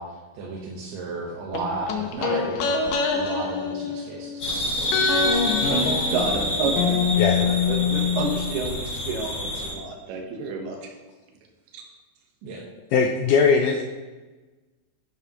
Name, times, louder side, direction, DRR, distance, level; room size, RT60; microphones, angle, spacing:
voice 1, 0.0-5.8 12.4-12.6, right 3 dB, 70° right, -4 dB, 2.7 m, -34 dB
sound 1, 1.5-4.5 4.9-8.7 9.0-9.1, left 6 dB, 70° left, 2.5 m, -25 dB
sound 2, 4.4-9.7, equal, 40° left, 3.1 m, -28 dB
voice 2, 5.7-7.0 7.4-10.8 11.7-11.8, right 4 dB, 90° right, 2 dB, 3.1 m, -29 dB
voice 3, 12.9-13.8, left 5 dB, 90° left, 3 dB, 1.8 m, -19 dB
10.5 x 10.0 x 3.0 m, 1.3 s
omnidirectional pair, 4.4 m